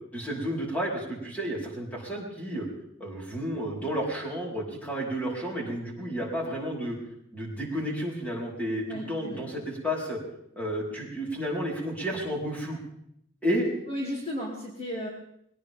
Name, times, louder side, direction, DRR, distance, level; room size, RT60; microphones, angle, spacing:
voice 1, 0.1-2.7 3.0-7.0 7.3-10.2 10.6-12.8 13.4-13.7, equal, 10° left, -3 dB, 4.5 m, -31 dB
voice 2, 8.9-9.4 13.9-15.1, equal, 30° left, -3 dB, 2.7 m, -34 dB
22.0 x 18.0 x 3.7 m, 0.74 s
head